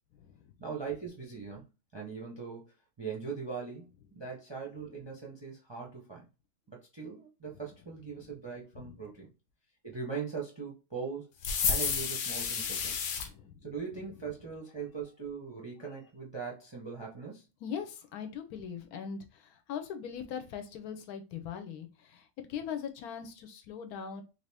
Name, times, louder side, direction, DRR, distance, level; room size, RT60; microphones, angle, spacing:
voice 1, 0.6-1.6 1.9-6.3 6.7-9.3 9.8-11.3 11.7-13.0 13.6-17.5, right 5 dB, 35° right, 0.4 m, -40 dB
sound 1, 11.4-13.3, left 6 dB, 65° left, 0.9 m, -31 dB
voice 2, 13.2-13.6 17.6-24.2, left 7 dB, 80° left, 1.1 m, -40 dB
3.5 x 2.6 x 3.3 m
omnidirectional pair, 1.6 m